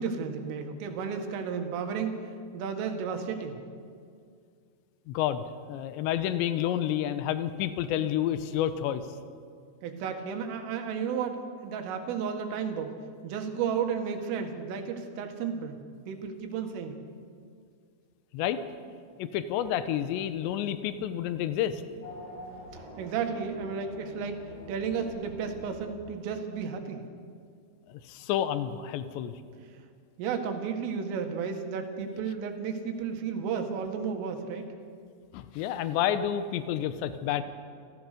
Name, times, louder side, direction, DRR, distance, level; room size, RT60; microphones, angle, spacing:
voice 1, 0.0-2.2 2.5-3.6 9.8-15.8 16.1-17.0 22.7-27.0 29.7-29.8 30.2-34.7, right 6 dB, 80° right, 5 dB, 4.2 m, -33 dB
voice 2, 5.1-9.1 18.3-18.6 19.2-21.8 27.9-29.3 35.3-37.4, left 10 dB, 80° left, 11 dB, 2.8 m, -29 dB
Race car auto racing / Accelerating revving vroom, 22.0-26.7, equal, 15° left, 6.6 m, -46 dB
28.5 x 14.5 x 6.7 m, 2.2 s
omnidirectional pair, 5.7 m